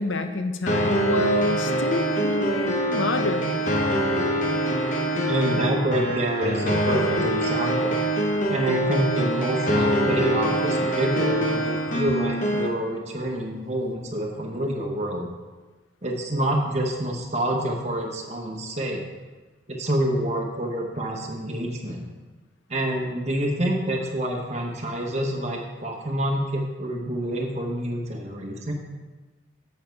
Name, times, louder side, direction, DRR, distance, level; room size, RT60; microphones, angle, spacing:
voice 1, 0.0-3.6, left 2 dB, 70° left, 8 dB, 0.7 m, -27 dB
sound 1, 0.7-12.7, right 1 dB, 40° left, 0.8 m, -24 dB
voice 2, 5.3-8.0 8.5-15.3 16.0-19.0 19.7-22.0 22.7-28.7, right 1 dB, 35° right, 0 dB, 1.0 m, -27 dB
7.3 x 6.7 x 4.6 m, 1.3 s
head